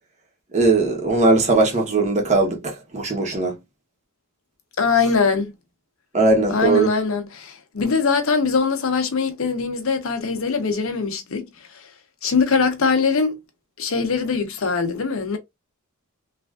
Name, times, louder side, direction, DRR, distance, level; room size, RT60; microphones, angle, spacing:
voice 1, 0.5-3.5 6.1-6.9, right 3 dB, 30° right, 0.9 m, -19 dB
voice 2, 4.8-5.5 6.5-11.5 11.7-11.9 12.2-13.4 13.8-15.4, left 5 dB, 70° left, 0.7 m, -22 dB
3.2 x 2.4 x 2.3 m
head